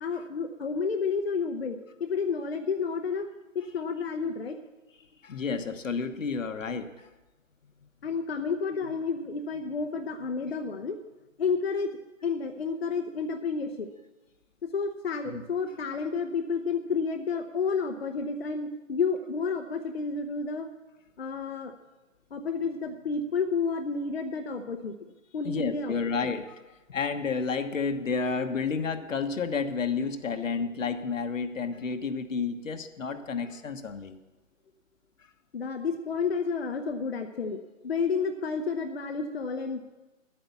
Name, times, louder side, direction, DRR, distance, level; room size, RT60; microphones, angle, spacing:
voice 1, 0.0-3.3 3.5-4.6 8.0-11.0 11.4-11.9 12.2-13.9 14.6-20.7 21.2-21.7 22.3-24.9 25.3-26.0 35.5-39.8, left 5 dB, 50° left, 5 dB, 0.7 m, -30 dB
voice 2, 5.2-7.1 15.3-15.4 25.4-26.6 26.9-34.2, left 5 dB, 75° left, 8 dB, 1.2 m, -31 dB
11.0 x 8.9 x 6.9 m, 1.1 s
hypercardioid pair, 170°, 39 cm